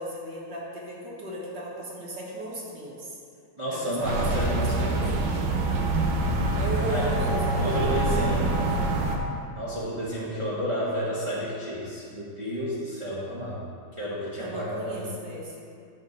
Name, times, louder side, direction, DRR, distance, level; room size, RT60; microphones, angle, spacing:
voice 1, 0.0-3.2 3.7-5.0 6.6-8.9 14.4-15.7, right 1 dB, 60° right, -5 dB, 1.9 m, -36 dB
voice 2, 3.6-5.4 6.9-7.1 7.6-8.7 9.5-15.1, equal, 20° right, -9 dB, 1.0 m, -31 dB
sound 1, 4.0-9.2, right 2 dB, 90° right, 1.7 m, -25 dB
9.9 x 3.6 x 6.6 m, 2.3 s
omnidirectional pair, 2.2 m